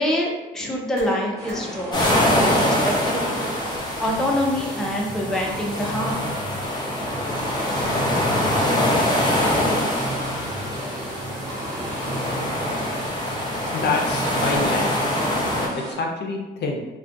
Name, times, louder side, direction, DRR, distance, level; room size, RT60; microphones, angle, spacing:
voice 1, 0.0-2.8 3.0-3.2 3.7-6.3, left 1 dB, 5° left, -2 dB, 0.4 m, -26 dB
sound 1, 0.6-14.6, right 1 dB, 55° right, 0.8 m, -36 dB
sound 2, 1.4-15.9, right 1 dB, 15° right, 1.0 m, -37 dB
sound 3, 1.9-15.7, left 1 dB, 20° left, 0.9 m, -24 dB
voice 2, 13.7-14.9 15.5-16.8, left 4 dB, 60° left, 1 dB, 0.5 m, -27 dB
2.3 x 2.2 x 2.5 m, 1.1 s
cardioid pair, 90°, 20 cm